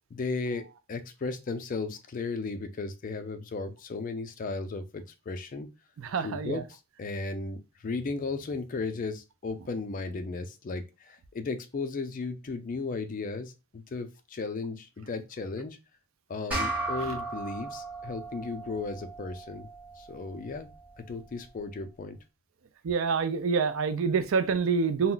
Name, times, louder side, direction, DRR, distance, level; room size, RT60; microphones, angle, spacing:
voice 1, 0.1-5.7 6.2-15.8 16.3-19.7 20.0-20.7 21.1-22.2, left 3 dB, 40° left, 0.4 m, -35 dB
voice 2, 6.0-6.6 22.8-25.1, right 5 dB, 70° right, 0.4 m, -27 dB
sound 1, 16.5-21.3, right 2 dB, 5° right, 0.8 m, -37 dB
2.3 x 2.1 x 3.7 m
head